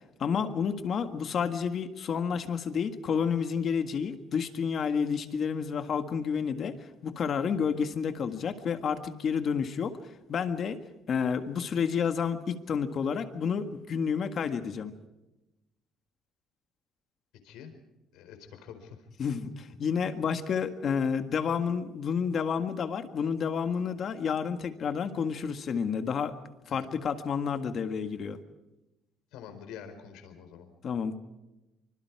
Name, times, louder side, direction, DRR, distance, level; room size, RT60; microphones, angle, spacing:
voice 1, 0.2-6.7 7.0-10.0 10.3-10.8 11.1-14.9 19.2-26.3 26.7-28.4 30.8-31.2, left 6 dB, 40° left, 9 dB, 1.7 m, -30 dB
voice 2, 18.1-19.0 26.7-26.9 29.3-30.7, left 8 dB, 80° left, 7 dB, 4.6 m, -46 dB
25.5 x 25.5 x 4.8 m, 1.0 s
cardioid pair, 160°, 0 cm